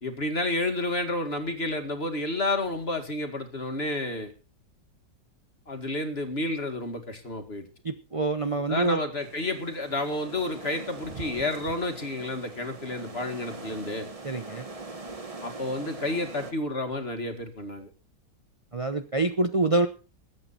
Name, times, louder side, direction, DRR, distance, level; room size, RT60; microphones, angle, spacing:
voice 1, 0.0-4.3 5.7-7.7 8.7-14.1 15.4-17.9, left 2 dB, 35° left, 6 dB, 2.3 m, -30 dB
voice 2, 7.8-9.0 14.2-14.7 18.7-19.9, right 2 dB, 45° right, 7 dB, 0.4 m, -26 dB
sound 1, 9.2-16.5, right 3 dB, 25° right, 1.0 m, -42 dB
21.5 x 8.8 x 4.3 m, 0.33 s
omnidirectional pair, 2.0 m